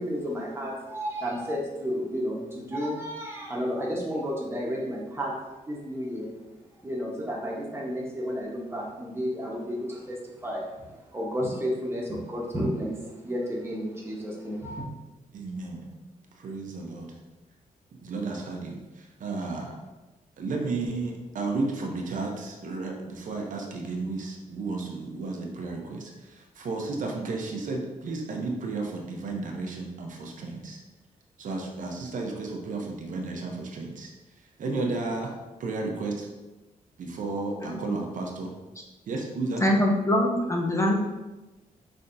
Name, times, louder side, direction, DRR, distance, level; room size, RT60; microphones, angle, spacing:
voice 1, 0.0-5.4 5.6-6.3 6.8-14.8, equal, 15° right, -3 dB, 1.1 m, -32 dB
voice 2, 15.3-15.9 16.4-17.1 18.0-19.8 20.4-30.8 31.4-34.1 34.6-35.3 35.6-36.3 37.0-38.5 39.1-39.6, right 3 dB, 65° right, 1 dB, 0.7 m, -33 dB
voice 3, 37.6-38.0 39.6-40.9, left 1 dB, 20° left, 0 dB, 0.5 m, -24 dB
5.4 x 3.4 x 2.6 m, 1.1 s
wide cardioid pair, 130°, 14 cm